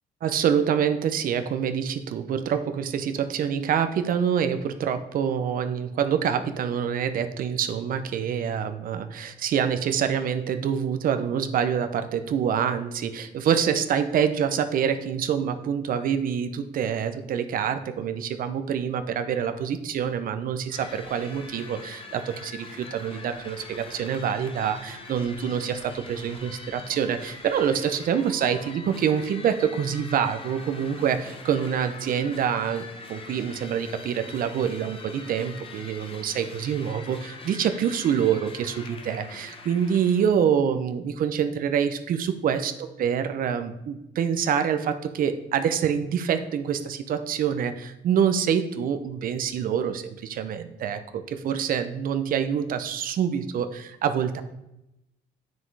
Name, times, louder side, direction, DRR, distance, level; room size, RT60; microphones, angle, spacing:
voice 1, 0.2-54.4, right 8 dB, 55° right, 9 dB, 0.8 m, -26 dB
sound 1, 20.7-40.3, left 4 dB, 30° left, 1.2 m, -43 dB
7.7 x 6.2 x 4.7 m, 0.88 s
cardioid pair, 110°, 17 cm